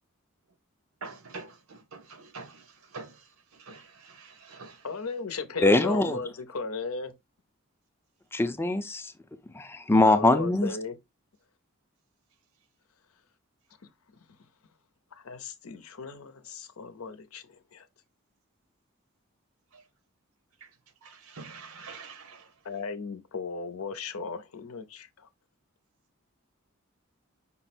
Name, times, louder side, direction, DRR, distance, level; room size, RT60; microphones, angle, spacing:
voice 1, 1.0-4.9 19.7-19.8 20.6-20.7 21.0-22.5, right 4 dB, 85° right, 0.9 m, -46 dB
voice 2, 4.8-7.1 9.9-11.0 15.1-17.9 22.6-25.3, left 4 dB, 90° left, 0.7 m, -36 dB
voice 3, 5.6-6.2 8.3-9.1 9.6-10.7, left 2 dB, 10° left, 0.4 m, -22 dB
5.5 x 2.1 x 4.3 m
head